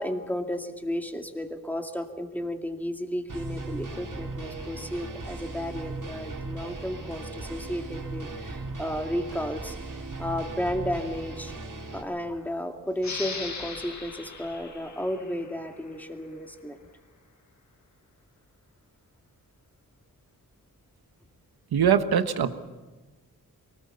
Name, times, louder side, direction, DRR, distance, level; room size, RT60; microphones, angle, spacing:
voice 1, 0.0-9.8 10.2-11.6 11.9-16.8, equal, 5° left, 4 dB, 2.3 m, -33 dB
sound 1, 3.3-12.0, right 2 dB, 55° right, 3.8 m, -37 dB
sound 2, 13.0-16.3, left 4 dB, 50° left, 2.0 m, -39 dB
voice 2, 21.7-22.6, right 8 dB, 85° right, 10 dB, 1.3 m, -22 dB
23.5 x 19.0 x 6.8 m, 1.2 s
cardioid pair, 80°, 36 cm